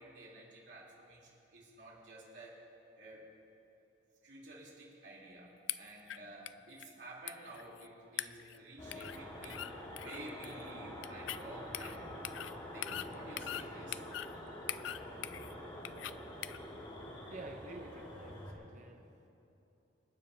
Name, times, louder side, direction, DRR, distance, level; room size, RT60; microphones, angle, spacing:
voice 1, 0.0-2.6 2.9-3.3 4.2-9.6 10.0-12.0 12.7-14.0, right 2 dB, 65° right, -5 dB, 3.4 m, -52 dB
sound 1, 5.7-6.2 6.5-6.6 6.8-6.9 7.3-7.9 8.2-8.6 8.9-9.2 9.4-9.7 10.0-10.6 11.0-11.4 11.7-12.0 12.2-12.5 12.8-13.7 13.9-14.3 14.7-15.5 15.8-16.1 16.4-16.6, left 12 dB, 80° left, 0.4 m, -41 dB
sound 2, 8.8-18.5, left 1 dB, 25° left, 1.8 m, -46 dB
voice 2, 17.3-19.2, right 2 dB, 40° right, 3 dB, 0.8 m, -50 dB
27.5 x 9.3 x 2.8 m, 2.9 s
head